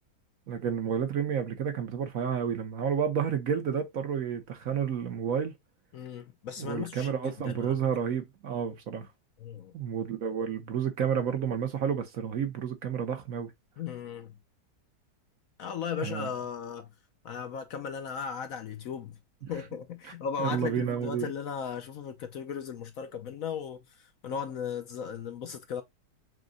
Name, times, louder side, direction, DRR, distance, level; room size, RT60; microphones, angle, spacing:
voice 1, 0.5-5.5 6.6-9.1 9.7-13.5 16.0-16.3 19.4-19.5 20.0-20.1 20.4-21.3, right 7 dB, 60° right, 1.1 m, -30 dB
voice 2, 5.9-7.1 7.4-7.7 9.4-9.7 13.8-14.3 15.6-16.9 17.2-19.2 19.5-23.8 24.2-25.8, left 7 dB, 65° left, 1.0 m, -36 dB
6.3 x 2.2 x 3.8 m
omnidirectional pair, 1.8 m